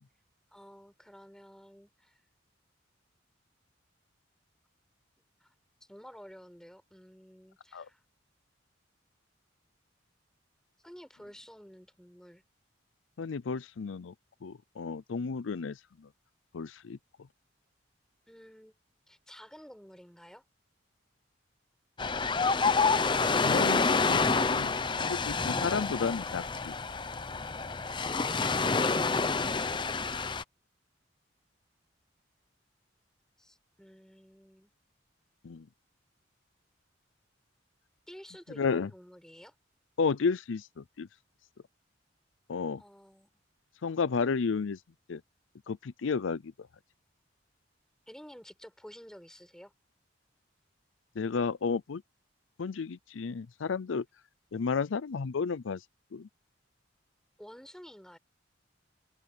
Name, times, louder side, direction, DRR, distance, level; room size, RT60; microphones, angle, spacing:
voice 1, 0.5-2.2 5.4-5.5 5.8-8.0 10.8-12.4 18.3-18.7 19.1-20.4 33.4-34.7 38.1-39.5 42.8-43.3 48.1-49.7 57.4-58.2, equal, 5° left, 4.9 m, -52 dB
voice 2, 13.2-14.1 14.4-15.8 16.5-17.0 23.4-24.2 24.5-26.7 35.4-35.6 38.6-38.9 40.0-41.1 42.5-42.8 43.8-44.8 45.1-45.2 45.7-46.5 51.2-52.0 52.6-54.0 54.5-55.8 56.1-56.3, left 5 dB, 85° left, 0.5 m, -32 dB
Ocean, 22.0-30.4, left 4 dB, 25° left, 0.6 m, -28 dB
head